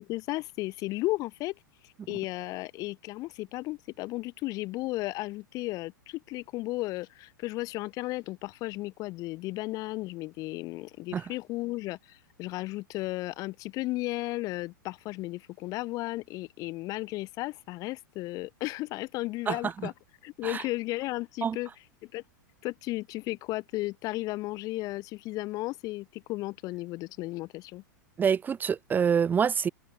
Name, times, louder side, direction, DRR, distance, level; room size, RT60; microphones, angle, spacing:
voice 1, 0.0-1.5 1.8-19.9 20.2-21.7 22.1-22.2 22.6-27.8, left 19 dB, 35° left, 1.9 m, -34 dB
voice 2, 28.2-29.7, right 7 dB, 15° right, 1.3 m, -26 dB
figure-of-eight pair, 95°, 11 cm